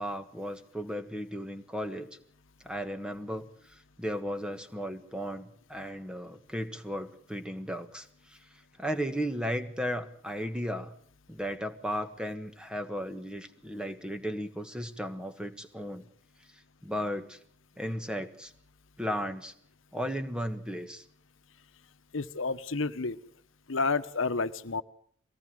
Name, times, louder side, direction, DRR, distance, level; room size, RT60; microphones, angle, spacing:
voice 1, 0.0-2.2 2.6-8.4 8.8-10.9 11.3-16.1 16.8-17.4 17.8-18.5 19.0-19.5 19.9-21.0, equal, 5° right, 8 dB, 1.5 m, -35 dB
voice 2, 22.1-23.2 23.7-24.8, left 4 dB, 80° left, 12 dB, 1.0 m, -30 dB
23.0 x 18.0 x 7.7 m, 0.62 s
head